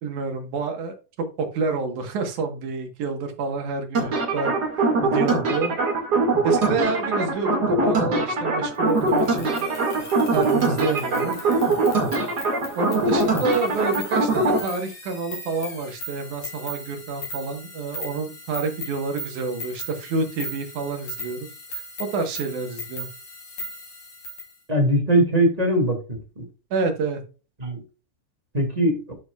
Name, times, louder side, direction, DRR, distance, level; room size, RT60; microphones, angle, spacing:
voice 1, 0.0-4.5 5.0-5.7 6.4-11.4 12.7-21.5 22.0-23.1 26.7-27.2, right 4 dB, 70° right, 2.7 m, -28 dB
sound 1, 3.9-14.6, right 2 dB, 35° right, 2.2 m, -22 dB
sound 2, 8.9-24.5, left 1 dB, 50° left, 4.2 m, -38 dB
voice 2, 24.7-26.4 27.6-27.8 28.5-29.0, right 1 dB, 15° right, 1.8 m, -21 dB
11.5 x 6.1 x 2.4 m
omnidirectional pair, 3.7 m